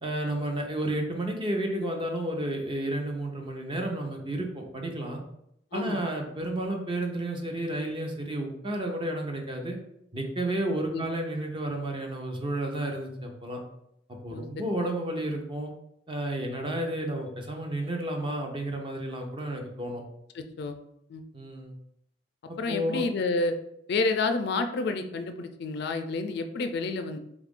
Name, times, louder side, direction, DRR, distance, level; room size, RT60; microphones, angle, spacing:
voice 1, 0.0-5.2 5.7-9.8 10.1-13.6 14.2-15.7 16.1-20.0 21.3-21.8 22.5-23.0, right 1 dB, 25° right, 2 dB, 0.6 m, -31 dB
voice 2, 20.3-20.8 21.1-21.2 22.6-23.5 23.9-27.2, left 3 dB, 60° left, 7 dB, 0.3 m, -29 dB
3.8 x 2.4 x 3.6 m, 0.76 s
head